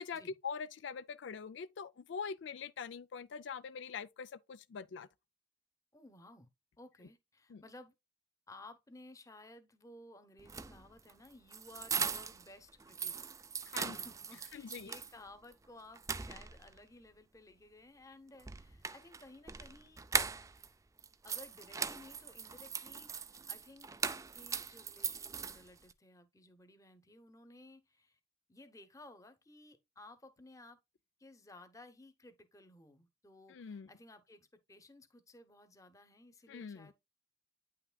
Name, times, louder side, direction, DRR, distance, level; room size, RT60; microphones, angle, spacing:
voice 1, 0.0-5.1 7.5-7.6 13.6-14.0 14.5-14.9 33.5-33.9 36.5-36.9, left 6 dB, 70° left, 0.4 m, -43 dB
voice 2, 5.9-6.5 6.8-7.9 8.5-13.2 13.8-20.1 21.2-28.2 28.5-30.8 31.2-36.9, left 2 dB, 15° left, 0.8 m, -57 dB
sound 1, 10.4-12.5 12.8-15.1 15.5-15.6 16.0-16.8 18.4-20.7 21.0-25.9, right 6 dB, 15° right, 0.4 m, -39 dB
9.3 x 5.8 x 2.3 m
head